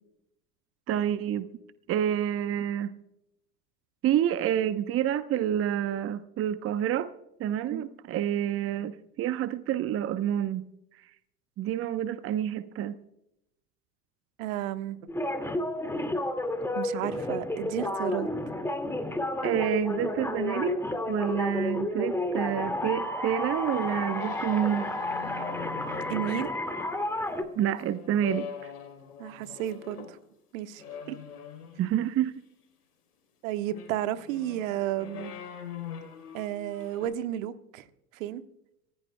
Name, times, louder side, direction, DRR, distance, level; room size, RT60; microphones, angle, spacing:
voice 1, 0.9-1.5 1.9-2.9 4.0-7.1 7.4-10.7 11.6-13.0 19.4-20.7 21.1-24.9 27.6-28.7 31.8-32.3, right 10 dB, 30° right, 0.9 m, -28 dB
voice 2, 14.4-15.0 16.8-18.3 26.1-26.5 29.2-30.2 30.5-31.2 33.4-35.3 36.3-37.8 38.1-38.4, right 12 dB, 60° right, 1.3 m, -32 dB
sound 1, 15.1-27.4, left 1 dB, 5° left, 2.1 m, -31 dB
sound 2, 23.6-30.2 30.8-32.0 33.5-37.1, left 8 dB, 75° left, 3.7 m, -44 dB
26.5 x 16.0 x 2.2 m
figure-of-eight pair, 80°, 45 cm